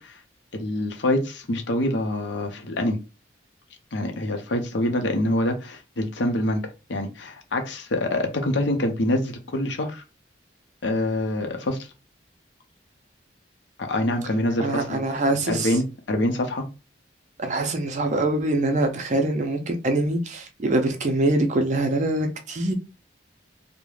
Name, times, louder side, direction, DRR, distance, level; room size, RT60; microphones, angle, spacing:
voice 1, 0.5-3.0 3.9-10.0 10.8-11.9 13.8-15.0 15.4-16.7, left 1 dB, 75° left, 0.6 m, -25 dB
voice 2, 14.6-15.7 17.4-22.7, right 2 dB, 40° right, 0.4 m, -24 dB
2.3 x 2.0 x 3.1 m
head